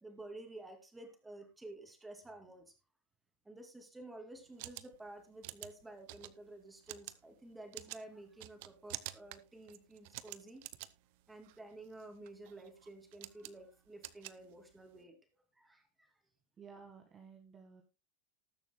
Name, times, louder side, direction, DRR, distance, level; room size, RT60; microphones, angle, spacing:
voice 1, 0.0-2.8 3.4-10.6 11.3-15.2 15.5-16.2, right 2 dB, 10° right, 5 dB, 2.6 m, -52 dB
sound 1, 4.4-15.0, right 17 dB, 60° right, 0.7 m, -50 dB
voice 2, 16.6-17.8, right 5 dB, 25° right, 4 dB, 1.7 m, -54 dB
19.5 x 6.9 x 2.2 m, 0.26 s
supercardioid pair, 135°, 0 cm